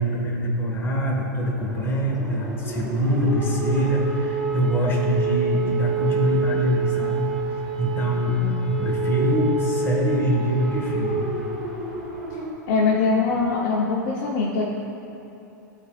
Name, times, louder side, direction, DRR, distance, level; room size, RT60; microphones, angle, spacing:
voice 1, 0.0-7.3 7.8-11.2, equal, 20° left, -2 dB, 1.5 m, -23 dB
sound 1, 1.6-12.5, right 4 dB, ahead, 1.1 m, -28 dB
voice 2, 12.7-14.6, left 4 dB, 50° left, -3 dB, 0.8 m, -22 dB
13.0 x 4.3 x 2.4 m, 2.8 s
hypercardioid pair, 110°, 10 cm